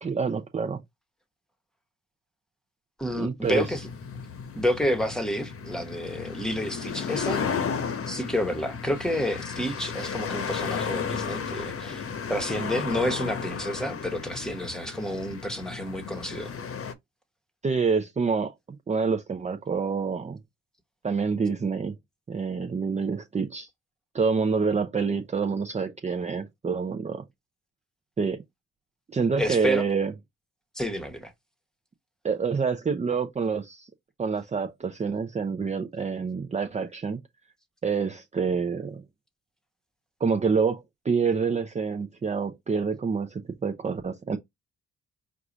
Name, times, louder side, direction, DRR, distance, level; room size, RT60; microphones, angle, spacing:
voice 1, 0.0-0.8 3.2-3.7 17.6-20.4 21.0-21.9 22.3-23.7 24.1-27.2 28.2-28.4 29.1-30.1 32.2-33.9 34.2-37.2 37.8-39.0 40.2-44.4, right 5 dB, 25° right, 0.6 m, -27 dB
voice 2, 3.0-3.9 4.5-7.5 8.1-12.0 12.3-16.5 29.4-29.9 30.7-31.3, equal, ahead, 1.2 m, -29 dB
sound 1, 3.4-16.9, left 6 dB, 50° left, 0.9 m, -34 dB
4.7 x 2.4 x 3.9 m
cardioid pair, 90°, 30 cm